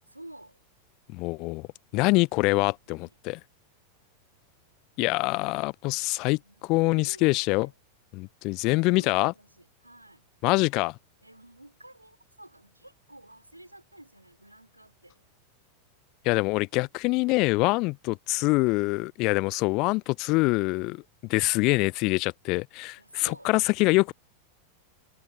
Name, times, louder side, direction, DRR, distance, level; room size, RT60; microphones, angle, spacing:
voice 1, 0.1-0.6 2.9-3.2 6.4-7.8 8.7-10.7 11.2-15.2 23.0-23.5 23.9-24.1, right 1 dB, 85° right, 3.1 m, -51 dB
voice 2, 1.1-1.7 1.9-3.4 5.0-6.4 6.7-7.7 8.1-9.3 10.4-10.9 16.2-21.0 21.3-24.1, left 24 dB, 40° left, 0.3 m, -25 dB
figure-of-eight pair, 90°, 0 cm